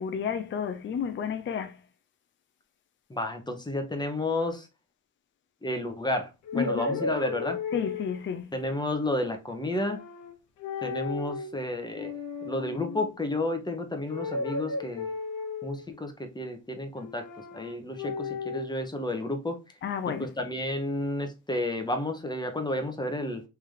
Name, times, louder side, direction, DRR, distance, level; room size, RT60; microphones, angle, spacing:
voice 1, 0.0-1.8 6.5-7.0 7.7-8.5 19.8-20.3, left 7 dB, 40° left, 0.5 m, -31 dB
voice 2, 3.1-4.7 5.6-6.3 6.5-7.6 8.5-10.0 10.8-12.1 12.4-15.1 15.6-17.2 17.5-19.6 20.2-23.4, left 1 dB, 15° left, 0.9 m, -31 dB
sound 1, 6.4-8.3 9.6-10.3 10.6-11.5 11.9-13.1 14.1-15.9 17.0-18.7, left 4 dB, 80° left, 0.9 m, -35 dB
3.4 x 2.9 x 3.7 m
cardioid pair, 90°, 30 cm